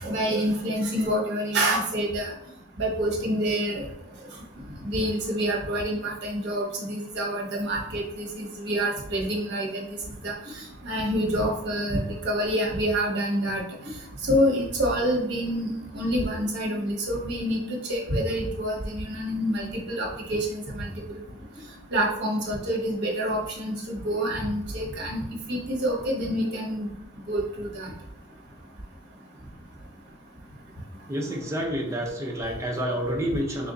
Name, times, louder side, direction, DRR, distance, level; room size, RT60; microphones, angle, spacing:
voice 1, 0.0-2.3 2.8-3.9 4.9-9.8 10.2-10.3 10.8-13.6 14.3-17.6 17.9-20.5 20.8-20.9 21.9-25.2 25.5-26.9 27.3-27.9, equal, 50° right, -2 dB, 0.9 m, -27 dB
voice 2, 31.1-33.7, equal, 15° right, 0 dB, 0.5 m, -29 dB
3.4 x 2.5 x 3.8 m, 0.77 s
head